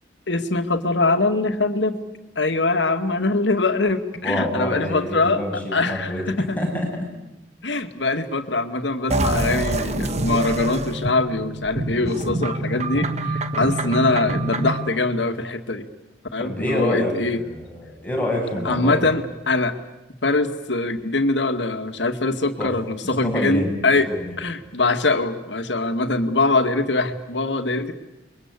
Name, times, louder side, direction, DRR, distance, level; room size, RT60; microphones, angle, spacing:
voice 1, 0.3-2.0 2.4-5.4 5.7-6.6 7.6-15.8 16.3-17.4 18.6-19.8 20.2-24.1 24.4-27.9, left 2 dB, 90° left, 7 dB, 2.1 m, -23 dB
voice 2, 4.2-6.2 6.6-6.9 16.4-17.1 17.4-19.1 22.6-22.7 23.0-23.8 24.1-24.2, left 1 dB, 10° left, -1 dB, 7.1 m, -26 dB
sound 1, 9.1-14.9, right 1 dB, 40° right, 1.5 m, -26 dB
29.5 x 23.0 x 8.4 m, 0.95 s
head